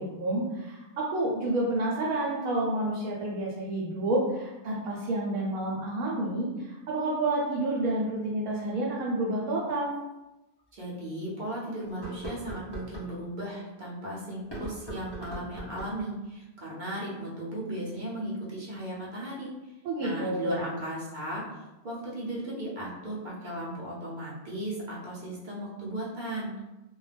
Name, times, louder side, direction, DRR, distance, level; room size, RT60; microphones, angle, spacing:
voice 1, 0.0-9.9 19.8-20.7, right 2 dB, 80° right, -4 dB, 1.0 m, -29 dB
sound 1, 9.9-10.0 10.6-10.7 11.9-13.1 14.4-16.1, right 1 dB, 25° left, 0.5 m, -40 dB
voice 2, 10.7-19.5 20.0-26.5, right 1 dB, 45° right, -6 dB, 0.7 m, -36 dB
2.3 x 2.1 x 3.2 m, 1.0 s
omnidirectional pair, 1.4 m